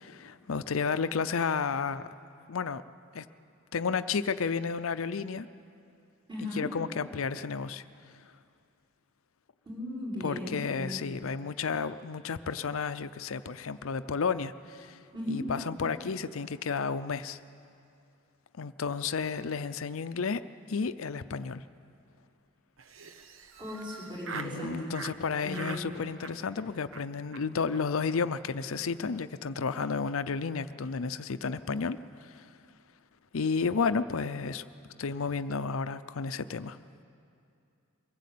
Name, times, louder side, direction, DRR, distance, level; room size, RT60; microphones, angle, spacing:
voice 1, 0.0-2.1 2.5-2.8 3.1-3.2 3.7-5.5 6.4-7.8 10.2-15.0 15.3-17.4 18.6-20.4 20.7-21.6 24.3-32.5 33.3-34.6 35.0-36.8, left 5 dB, 80° left, 13 dB, 0.6 m, -32 dB
voice 2, 6.3-6.7 9.6-11.0 15.1-15.5 23.6-24.9 25.4-25.9, left 1 dB, 20° right, -6 dB, 5.9 m, -37 dB
Laughter, 22.8-24.6 24.9-25.2 25.5-25.9 26.2-26.6 26.9-27.0 27.3-27.4 27.7-27.8 28.0-28.2 28.5-28.8, right 5 dB, 70° right, 1.1 m, -43 dB
23.0 x 16.0 x 8.5 m, 2.6 s
head